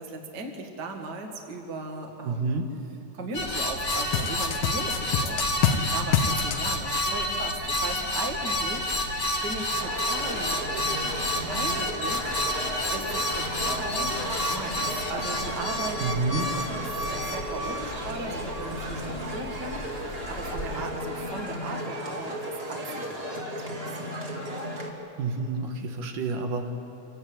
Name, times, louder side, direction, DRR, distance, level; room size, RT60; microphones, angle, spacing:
voice 1, 0.0-2.6 3.1-12.4 12.9-14.1 14.5-19.0 19.3-24.1, right 3 dB, 35° right, 3 dB, 2.3 m, -38 dB
voice 2, 2.2-2.7 16.0-16.5 25.2-26.7, right 3 dB, 80° right, 4 dB, 3.1 m, -29 dB
sound 1, 3.3-20.9, left 1 dB, 30° left, 2.0 m, -30 dB
sound 2, 3.9-5.8 6.1-6.6, left 8 dB, 85° left, 3.0 m, -25 dB
sound 3, 9.8-24.9, equal, 20° right, 2.0 m, -35 dB
27.0 x 17.5 x 8.7 m, 2.9 s
omnidirectional pair, 3.7 m